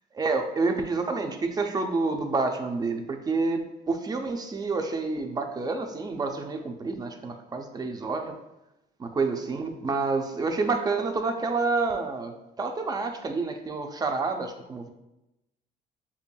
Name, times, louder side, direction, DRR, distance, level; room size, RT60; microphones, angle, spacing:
voice 1, 0.1-8.4 9.0-14.9, right 3 dB, 25° right, 5 dB, 0.5 m, -28 dB
6.8 x 2.6 x 2.2 m, 0.92 s
cardioid pair, 110°, 17 cm